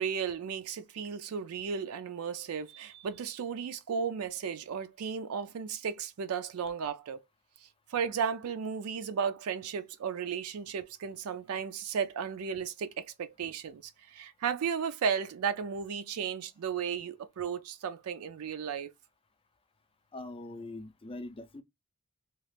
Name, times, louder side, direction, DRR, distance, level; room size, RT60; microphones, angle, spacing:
voice 1, 0.0-7.2 7.6-18.9, right 6 dB, 70° right, 0.4 m, -34 dB
voice 2, 20.1-21.6, left 2 dB, 25° left, 0.5 m, -42 dB
3.0 x 2.3 x 3.2 m
head